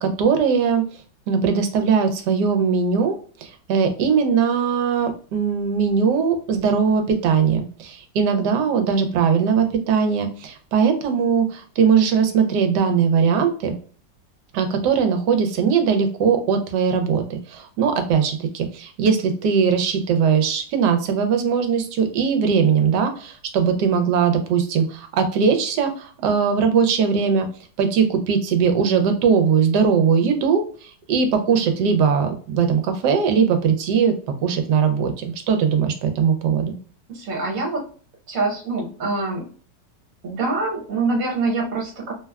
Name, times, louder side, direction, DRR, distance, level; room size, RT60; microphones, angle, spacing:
voice 1, 0.0-0.8 1.3-13.7 14.5-27.5 27.8-34.2 34.4-36.8, right 6 dB, 75° right, 6 dB, 1.2 m, -20 dB
voice 2, 37.1-37.8 38.3-39.4 40.2-42.1, right 3 dB, 55° right, 0 dB, 1.3 m, -25 dB
3.4 x 2.2 x 2.2 m, 0.42 s
omnidirectional pair, 1.9 m